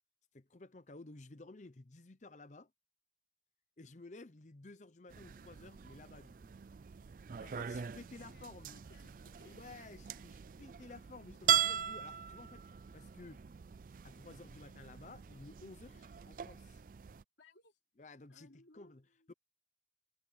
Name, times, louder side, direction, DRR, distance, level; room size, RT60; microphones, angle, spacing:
voice 1, 0.3-2.7 3.8-6.5 7.4-8.7 9.4-12.6 12.9-13.4 14.0-16.8 18.0-19.3, left 3 dB, 40° left, 0.7 m, -54 dB
sound 1, 5.1-17.2, right 9 dB, 45° right, 0.4 m, -40 dB
voice 2, 7.3-9.6 17.4-19.0, left 2 dB, 85° left, 3.3 m, -64 dB
head